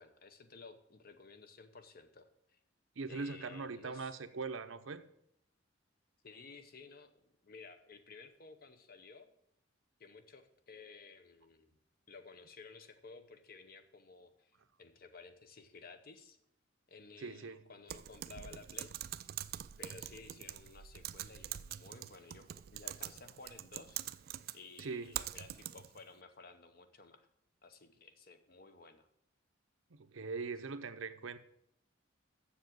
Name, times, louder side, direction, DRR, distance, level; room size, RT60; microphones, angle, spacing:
voice 1, 0.0-2.6 3.1-4.2 6.2-9.3 10.0-11.8 12.1-14.5 14.8-16.4 16.9-18.9 19.8-24.0 24.5-27.3 27.6-29.1, left 4 dB, 45° left, 9 dB, 0.8 m, -55 dB
voice 2, 3.0-5.0 17.2-17.6 24.8-25.1 29.9-31.4, right 4 dB, 75° right, 10 dB, 0.7 m, -41 dB
Typing, 17.9-26.0, right 12 dB, 50° right, 0.3 m, -44 dB
7.3 x 7.0 x 7.7 m, 0.75 s
head